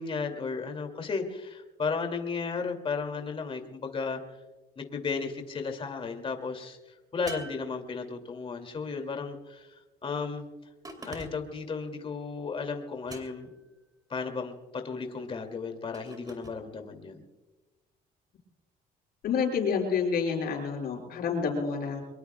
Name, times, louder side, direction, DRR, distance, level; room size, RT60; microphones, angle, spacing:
voice 1, 0.0-4.2 4.8-6.8 7.1-10.5 11.1-13.5 14.1-17.2, left 4 dB, 30° left, 5 dB, 2.5 m, -34 dB
sound 1, 7.3-8.4 10.8-11.6 13.1-13.7 15.9-16.6, right 2 dB, 20° right, 3.0 m, -44 dB
voice 2, 19.2-22.0, left 6 dB, 65° left, 2 dB, 5.7 m, -28 dB
24.0 x 22.5 x 2.3 m, 1.1 s
cardioid pair, 110°, 17 cm